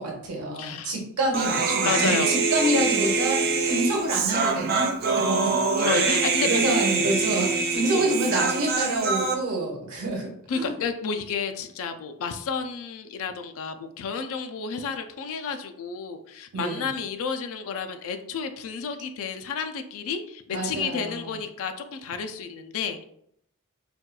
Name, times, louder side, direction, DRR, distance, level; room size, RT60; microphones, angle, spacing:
voice 1, 0.0-5.6 6.4-10.7 16.5-16.9 20.5-21.4, right 2 dB, 85° right, -1 dB, 1.0 m, -27 dB
voice 2, 0.5-0.9 1.8-2.3 5.8-6.6 7.9-8.0 10.5-23.1, left 5 dB, 65° left, 6 dB, 0.4 m, -31 dB
Human voice, 1.3-9.3, right 4 dB, 45° right, 0.4 m, -24 dB
4.3 x 2.3 x 2.2 m, 0.72 s
head